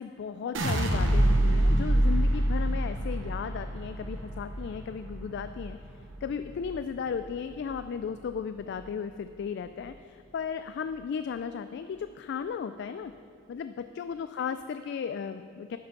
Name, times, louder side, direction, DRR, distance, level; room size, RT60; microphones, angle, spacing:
voice 1, 0.0-5.8 6.2-13.1 13.5-15.8, left 6 dB, 60° left, 10 dB, 0.3 m, -35 dB
sound 1, 0.5-6.7 7.1-7.7, right 1 dB, 70° right, 0.9 m, -26 dB
10.5 x 6.7 x 5.8 m, 2.3 s
head